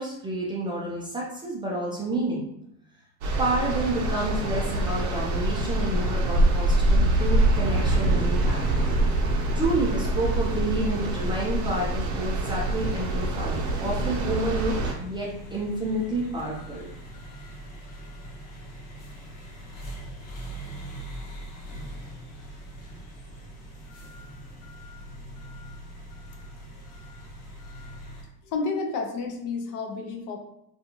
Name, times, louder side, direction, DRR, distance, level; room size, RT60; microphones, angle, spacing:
voice 1, 0.0-2.4 3.4-8.6 9.5-16.9, right 2 dB, 10° right, -4 dB, 0.4 m, -29 dB
sound 1, 3.2-14.9, right 1 dB, 45° right, 0.7 m, -25 dB
sound 2, 13.1-28.2, right 1 dB, 70° left, 1.1 m, -42 dB
voice 2, 28.4-30.4, left 4 dB, 45° left, 3 dB, 0.5 m, -30 dB
2.5 x 2.3 x 2.9 m, 0.78 s
supercardioid pair, 110°, 42 cm